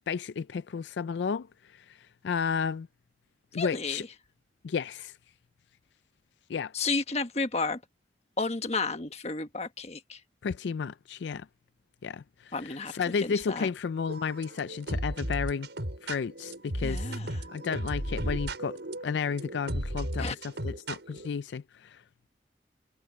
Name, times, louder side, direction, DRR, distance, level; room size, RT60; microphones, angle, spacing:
voice 1, 0.1-2.9 3.5-4.0 4.6-5.2 6.5-6.7 10.4-11.5 12.0-15.7 16.0-17.1 17.5-22.0, left 6 dB, 75° left, 0.4 m, -32 dB
voice 2, 3.5-4.1 6.7-7.8 8.4-10.2 12.5-13.7 16.8-17.5 20.2-20.4, left 3 dB, 35° left, 1.4 m, -32 dB
sound 1, 14.1-21.3, right 1 dB, 80° right, 5.2 m, -35 dB
head